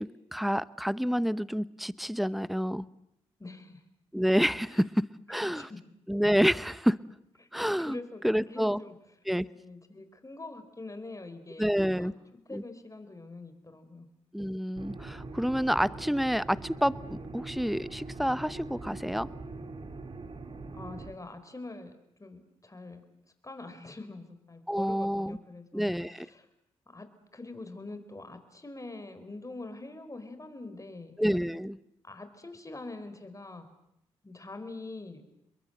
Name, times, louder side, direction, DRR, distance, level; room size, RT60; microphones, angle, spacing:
voice 1, 0.0-2.8 4.1-5.7 6.1-7.0 7.5-8.8 9.3-9.5 11.6-12.1 12.5-12.6 14.3-19.3 24.7-25.4 25.7-26.3 31.2-31.8, equal, ahead, 18 dB, 0.9 m, -28 dB
voice 2, 3.4-3.8 4.7-4.9 5.3-5.8 7.4-7.5 7.8-8.9 9.5-14.1 20.7-21.9 22.2-23.0 23.4-26.5 26.9-27.1 27.3-31.2 32.0-33.7 34.2-35.2, left 2 dB, 25° left, 9 dB, 4.3 m, -44 dB
sound 1, 14.8-21.1, right 3 dB, 45° right, 2.8 m, -42 dB
28.5 x 22.0 x 7.9 m, 0.81 s
hypercardioid pair, 40°, 13 cm